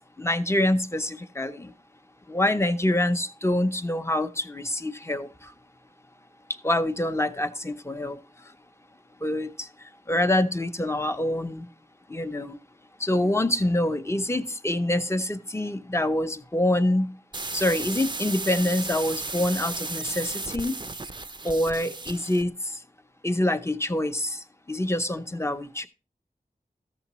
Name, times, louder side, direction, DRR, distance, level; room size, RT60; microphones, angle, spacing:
voice 1, 0.2-1.7 2.3-5.3 6.6-8.2 9.2-9.7 10.1-11.7 12.1-12.6 13.0-17.1 17.5-20.8 21.4-22.5 23.2-24.4 24.7-25.9, left 1 dB, 15° left, 8 dB, 0.6 m, -26 dB
sound 1, 17.3-22.5, right 3 dB, 30° right, 0.4 m, -34 dB
13.0 x 6.6 x 3.0 m, 0.35 s
wide cardioid pair, 55°, 16 cm